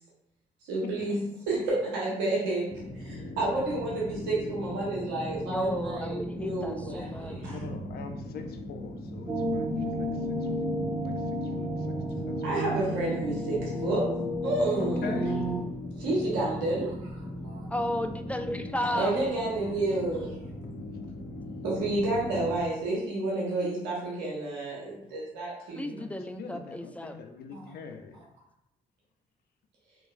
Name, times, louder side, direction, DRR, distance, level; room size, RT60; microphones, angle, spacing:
voice 1, 0.7-2.7 3.0-7.5 12.4-14.1 14.4-15.2 16.0-16.9 17.5-17.6 18.9-20.4 21.6-26.0 27.5-27.6, right 2 dB, 85° right, -5 dB, 1.2 m, -30 dB
sound 1, 2.7-22.6, left 1 dB, 40° left, 0.9 m, -39 dB
voice 2, 3.1-3.4 7.5-12.6 14.7-15.4 25.6-26.1 26.4-28.2, left 5 dB, 65° left, 5 dB, 0.5 m, -43 dB
voice 3, 5.4-7.4 17.7-19.1 25.8-27.2, left 1 dB, 10° left, 7 dB, 0.4 m, -33 dB
sound 2, 9.3-15.6, equal, 30° right, 1.4 m, -32 dB
3.7 x 3.0 x 2.5 m, 0.79 s
hypercardioid pair, 45°, 17 cm